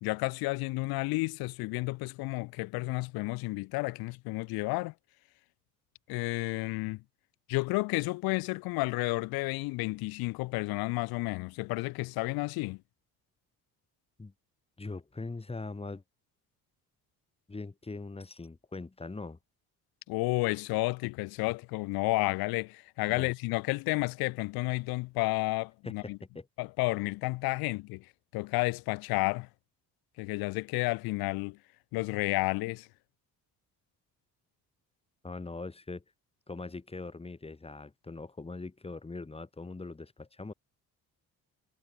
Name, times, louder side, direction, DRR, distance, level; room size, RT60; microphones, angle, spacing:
voice 1, 0.0-4.9 6.1-7.0 7.5-12.8 20.1-26.2 26.6-29.5 30.2-31.6 31.9-32.9, left 23 dB, 85° left, 0.5 m, -31 dB
voice 2, 14.8-16.0 17.5-19.4 23.1-23.3 25.8-26.5 35.2-36.0 36.5-40.5, left 3 dB, 15° left, 2.8 m, -41 dB
cardioid pair, 115°, 35 cm